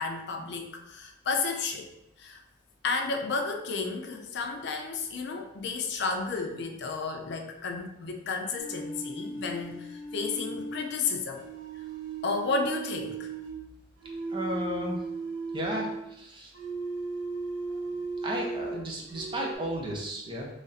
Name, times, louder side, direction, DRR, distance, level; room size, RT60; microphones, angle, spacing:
voice 1, 0.0-1.9 2.2-2.4 2.8-11.4 12.2-13.3, left 4 dB, 60° left, 4 dB, 0.5 m, -32 dB
sound 1, 8.6-13.6 14.0-16.0 16.5-18.8 19.1-19.5, right 3 dB, 80° right, 0.7 m, -36 dB
voice 2, 14.3-15.0 15.5-16.5 18.2-20.5, equal, 25° right, -1 dB, 0.6 m, -34 dB
3.2 x 2.5 x 4.0 m, 0.86 s
head